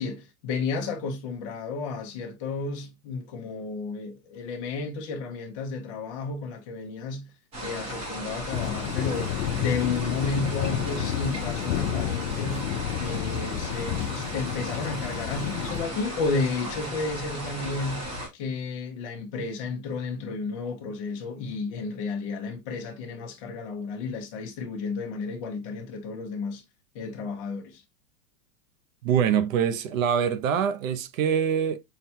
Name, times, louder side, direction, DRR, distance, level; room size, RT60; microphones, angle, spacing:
voice 1, 0.0-7.3 7.6-12.7 13.0-26.6 26.9-27.8, left 4 dB, 25° left, 0.5 m, -32 dB
sound 1, 7.5-18.3, equal, 15° right, 0.7 m, -36 dB
sound 2, 8.5-15.8, left 11 dB, 65° left, 0.6 m, -31 dB
voice 2, 29.0-31.8, right 8 dB, 60° right, 0.6 m, -24 dB
5.7 x 2.2 x 2.6 m
supercardioid pair, 170°, 45 cm